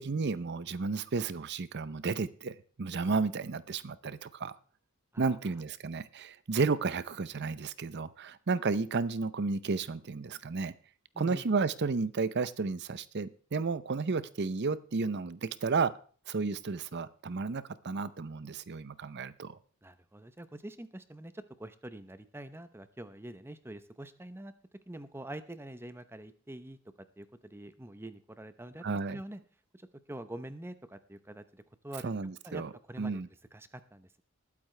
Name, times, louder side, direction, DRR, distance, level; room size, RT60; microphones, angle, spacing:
voice 1, 0.0-4.6 5.2-10.7 11.2-15.9 16.3-19.6 28.8-29.2 32.0-32.7 33.0-33.3, right 4 dB, 50° right, 16 dB, 0.6 m, -32 dB
voice 2, 19.8-24.5 24.9-26.8 27.2-29.4 29.7-32.1 32.4-32.6 32.9-33.2 33.5-34.2, right 1 dB, 10° right, 12 dB, 0.7 m, -45 dB
20.5 x 8.6 x 3.3 m, 0.43 s
head